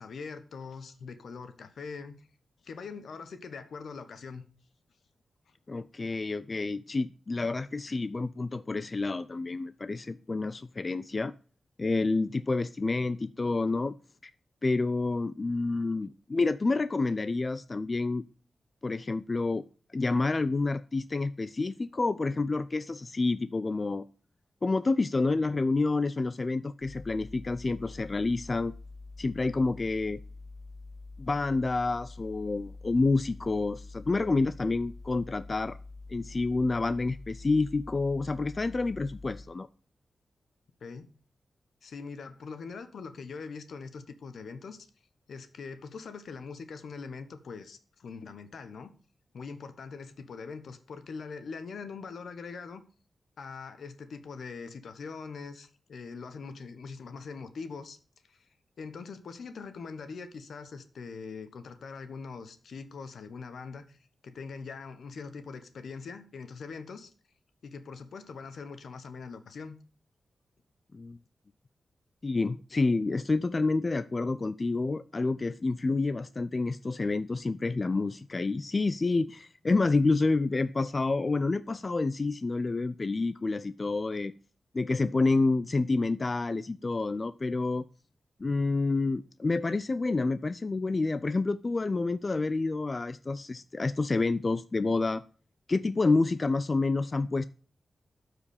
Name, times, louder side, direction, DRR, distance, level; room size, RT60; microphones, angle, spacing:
voice 1, 0.0-2.3 2.6-4.4 40.8-41.1 41.8-44.9 45.3-48.9 49.3-52.8 53.4-58.0 58.3-58.5 58.8-64.0 64.2-67.1 67.6-69.8, left 5 dB, 80° left, 1.2 m, -42 dB
voice 2, 5.7-11.3 11.8-13.9 14.2-14.3 14.6-18.2 18.8-19.6 19.9-24.0 24.6-28.7 29.2-30.2 31.2-35.8 36.1-39.7 70.9-71.2 72.2-84.3 84.7-87.8 88.4-95.2 95.7-97.5, left 3 dB, 40° left, 0.4 m, -28 dB
sound 1, 26.8-39.4, left 3 dB, 65° left, 1.8 m, -46 dB
12.5 x 5.0 x 6.5 m
cardioid pair, 65°, 0 cm